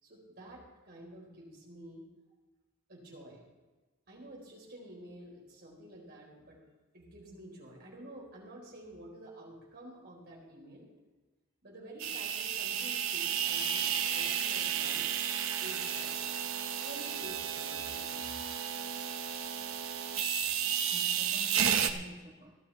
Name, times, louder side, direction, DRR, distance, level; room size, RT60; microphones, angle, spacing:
voice 1, 0.0-2.0 2.9-3.5 4.1-6.6 6.9-10.9 11.6-15.2 15.6-16.1 16.8-18.4, right 1 dB, 50° right, -2 dB, 4.3 m, -50 dB
sound 1, 12.0-21.9, right 8 dB, 65° right, 0.8 m, -32 dB
voice 2, 20.6-22.5, right 1 dB, 30° right, -3 dB, 1.5 m, -49 dB
18.0 x 12.0 x 3.4 m, 1.2 s
head